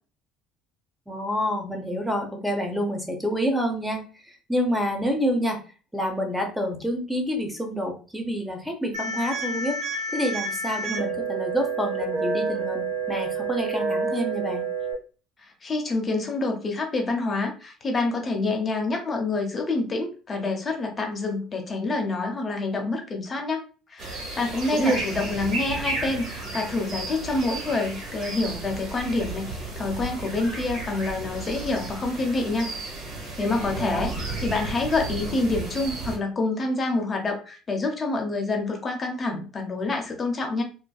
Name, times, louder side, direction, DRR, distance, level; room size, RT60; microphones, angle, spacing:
voice 1, 1.1-5.6 5.9-9.8 10.1-14.7 24.7-25.0 33.7-34.1, equal, 5° right, 2 dB, 0.9 m, -28 dB
sound 1, 8.9-14.9, right 3 dB, 80° right, 0.9 m, -29 dB
voice 2, 15.4-23.6 23.9-32.7 33.2-40.6, left 3 dB, 30° left, 2 dB, 0.8 m, -27 dB
sound 2, 24.0-36.2, right 2 dB, 50° right, 1.3 m, -33 dB
2.6 x 2.1 x 2.3 m, 0.36 s
hypercardioid pair, 65°, 0 cm